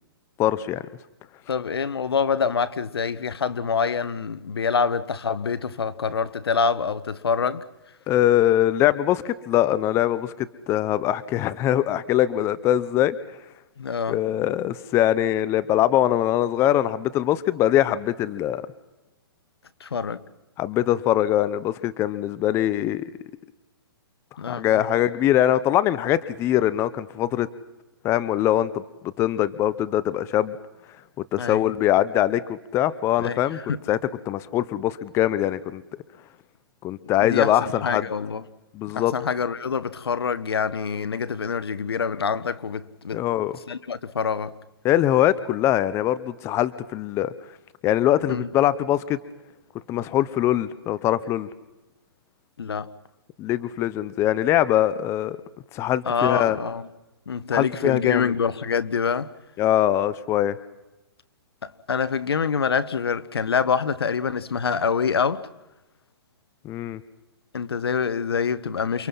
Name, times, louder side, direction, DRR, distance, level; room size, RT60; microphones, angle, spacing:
voice 1, 0.4-0.8 8.1-13.2 14.1-18.6 20.6-23.1 24.5-27.5 28.0-30.5 31.3-33.6 33.9-34.0 34.3-35.8 36.8-38.1 38.7-39.1 43.1-43.6 44.8-47.3 47.8-49.2 49.9-51.5 53.4-55.4 55.7-56.6 57.5-58.3 59.6-60.6 66.6-67.0, left 12 dB, 20° left, 0.8 m, -22 dB
voice 2, 1.5-7.6 13.8-14.2 19.8-20.2 24.4-24.8 31.4-31.7 33.2-33.8 37.2-38.4 38.9-43.2 43.7-44.5 48.3-48.5 52.6-52.9 56.1-56.9 57.3-59.3 61.6-65.5 67.5-69.1, left 6 dB, 85° left, 1.2 m, -26 dB
29.0 x 23.5 x 5.7 m
hypercardioid pair, 145°, 13 cm